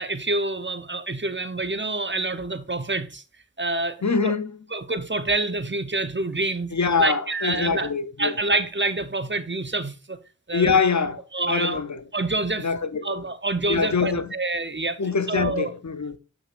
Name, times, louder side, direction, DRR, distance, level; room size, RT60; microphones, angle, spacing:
voice 1, 0.0-3.2 3.6-4.0 4.2-4.3 4.7-6.7 7.0-7.9 8.2-10.2 10.5-10.8 11.3-11.8 12.1-12.7 13.0-15.0 15.3-15.7, right 2 dB, 35° right, 0.9 m, -27 dB
voice 2, 4.0-4.5 6.7-8.4 10.5-12.0 12.6-13.2 13.7-14.3 15.0-16.2, left 5 dB, 60° left, 0.8 m, -24 dB
7.9 x 6.1 x 2.5 m
wide cardioid pair, 40°, 33 cm